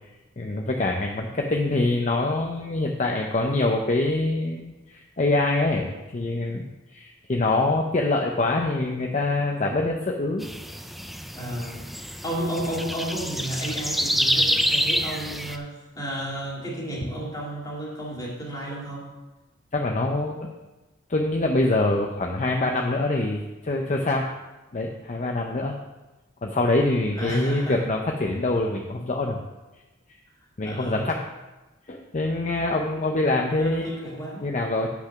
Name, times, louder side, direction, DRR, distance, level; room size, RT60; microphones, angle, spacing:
voice 1, 0.4-6.6 6.9-10.5 19.7-20.5 21.1-24.3 24.7-25.8 26.4-29.4 30.6-31.2 31.9-33.9 34.4-34.9, left 2 dB, 40° left, 2 dB, 0.6 m, -25 dB
sound 1, 10.4-15.6, equal, ahead, 0.4 m, -27 dB
voice 2, 11.4-11.9 12.2-19.1 27.1-27.8 30.6-31.1 33.6-34.5, right 1 dB, 20° left, -3 dB, 2.1 m, -32 dB
8.1 x 6.0 x 5.8 m, 1.1 s
head